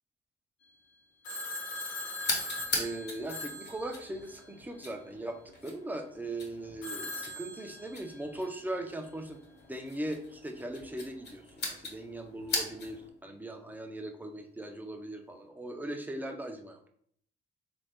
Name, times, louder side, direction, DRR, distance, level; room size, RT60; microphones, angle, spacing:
Telephone, 1.2-4.5 6.8-8.3, left 2 dB, 80° left, 0.8 m, -40 dB
sound 1, 2.2-13.1, left 3 dB, 60° left, 1.2 m, -40 dB
voice 1, 2.7-9.4 9.7-16.9, right 1 dB, 10° right, 4 dB, 0.6 m, -39 dB
3.5 x 2.6 x 3.5 m, 0.64 s
cardioid pair, 90°, 20 cm